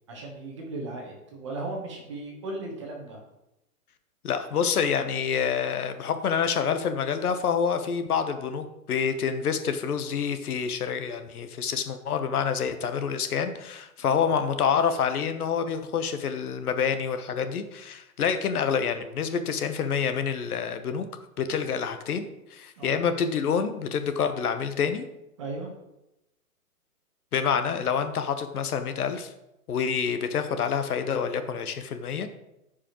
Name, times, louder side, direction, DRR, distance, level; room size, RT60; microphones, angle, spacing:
voice 1, 0.1-3.2 14.0-14.2 22.8-23.0 25.4-25.7, right 2 dB, 20° right, 0 dB, 0.9 m, -36 dB
voice 2, 4.2-21.1 21.4-22.2 22.5-25.1 27.3-29.3 29.7-32.3, left 7 dB, 75° left, 9 dB, 1.0 m, -27 dB
13.0 x 4.9 x 3.0 m, 0.89 s
hypercardioid pair, 175°, 45 cm